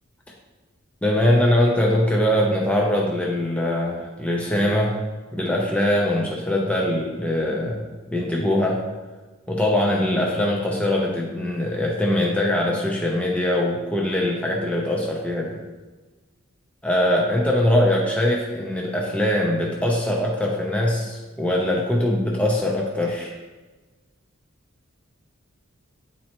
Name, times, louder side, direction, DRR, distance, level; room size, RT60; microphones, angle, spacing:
voice 1, 1.0-5.0 5.3-8.8 9.5-15.6 16.8-23.4, left 1 dB, 5° left, -2 dB, 0.6 m, -22 dB
8.8 x 4.3 x 2.9 m, 1.2 s
head